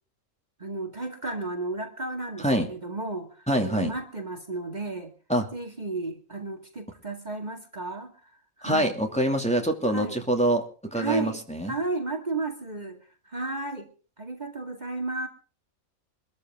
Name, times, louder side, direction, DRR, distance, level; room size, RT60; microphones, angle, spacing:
voice 1, 0.6-5.1 5.5-8.9 9.9-10.2 10.9-11.4 11.7-13.9 14.2-15.3, right 3 dB, 30° right, 3 dB, 2.3 m, -33 dB
voice 2, 3.5-3.9 5.3-5.5 8.6-11.7, right 1 dB, 5° left, 2 dB, 2.5 m, -25 dB
23.5 x 13.5 x 3.7 m, 0.37 s
omnidirectional pair, 1.5 m